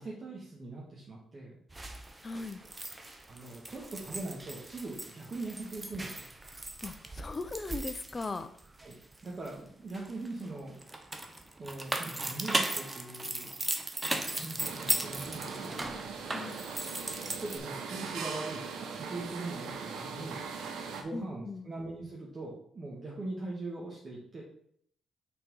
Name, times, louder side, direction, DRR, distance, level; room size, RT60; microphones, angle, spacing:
voice 1, 0.0-1.6 3.3-6.2 8.8-9.0 9.2-11.1 11.5-13.5 14.2-16.6 17.4-20.5 20.9-24.4, right 2 dB, 35° right, -4 dB, 1.7 m, -41 dB
sound 1, 1.7-9.5 9.9-17.6, right 2 dB, 20° right, 0.9 m, -37 dB
voice 2, 2.2-2.6 6.8-8.5 16.3-16.6 21.1-21.7, left 3 dB, 30° left, 10 dB, 0.7 m, -38 dB
sound 2, 14.6-21.0, right 5 dB, 80° right, 1.0 m, -40 dB
6.2 x 4.5 x 5.5 m, 0.66 s
cardioid pair, 90°, 0 cm